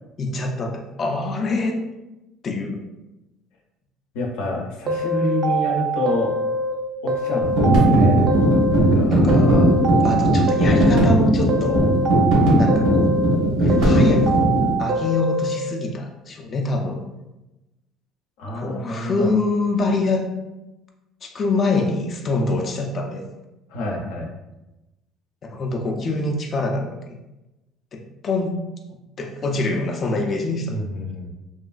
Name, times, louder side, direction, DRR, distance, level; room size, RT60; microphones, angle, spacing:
voice 1, 0.2-1.8 2.4-2.8 9.1-12.0 12.5-13.1 13.6-14.4 14.8-17.0 18.5-20.3 21.2-23.2 25.4-27.1 27.9-28.6 29.2-30.7, left 3 dB, 40° left, 2 dB, 0.3 m, -25 dB
voice 2, 4.1-6.3 7.0-8.2 8.7-9.1 18.4-19.3 23.7-24.3 30.7-31.3, left 2 dB, 90° left, -1 dB, 0.6 m, -27 dB
sound 1, 4.9-6.7 7.1-9.0 9.3-11.2 11.5-13.4 13.7-15.6, right 1 dB, 50° right, 0.4 m, -24 dB
sound 2, 7.4-14.7, right 1 dB, 85° right, 1.1 m, -17 dB
3.0 x 2.4 x 2.3 m, 1.0 s
cardioid pair, 115°, 0 cm